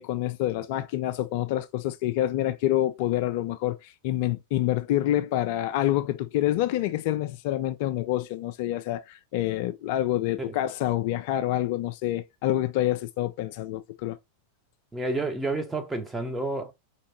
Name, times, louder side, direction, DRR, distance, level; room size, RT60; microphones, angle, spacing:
voice 1, 0.0-14.2, left 13 dB, 50° left, 0.4 m, -27 dB
voice 2, 14.9-16.7, right 2 dB, 10° right, 1.0 m, -30 dB
4.6 x 3.1 x 2.9 m
figure-of-eight pair, 90°, 0 cm